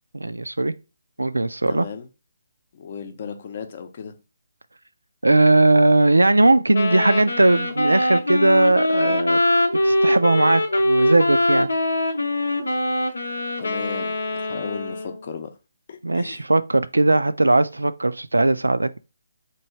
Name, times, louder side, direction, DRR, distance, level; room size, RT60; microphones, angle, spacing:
voice 1, 0.1-0.7 1.2-1.9 5.2-9.4 9.8-11.7 16.0-19.0, right 2 dB, 90° right, 0.3 m, -18 dB
voice 2, 1.7-2.1 2.7-4.1 13.6-15.5 15.9-16.4, left 6 dB, 45° left, 0.6 m, -35 dB
Wind instrument woodwind instrument, 6.7-15.2, left 1 dB, 80° left, 0.7 m, -23 dB
3.0 x 2.7 x 4.3 m
figure-of-eight pair, 150°, 0 cm